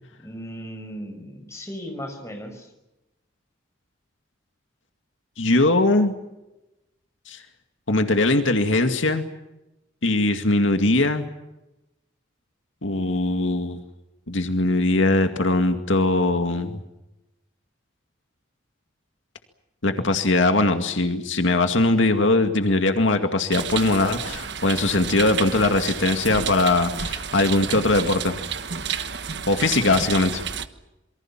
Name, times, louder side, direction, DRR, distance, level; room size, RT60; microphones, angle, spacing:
voice 1, 0.2-2.7, equal, 15° left, 5 dB, 5.5 m, -36 dB
voice 2, 5.4-6.1 7.3-7.4 7.9-9.3 10.0-11.3 12.8-13.8 14.3-16.8 19.8-28.4 29.5-30.4, left 2 dB, 80° left, 6 dB, 2.2 m, -21 dB
sound 1, 23.5-30.7, right 7 dB, 60° right, 1.3 m, -31 dB
27.5 x 24.0 x 7.4 m, 0.96 s
head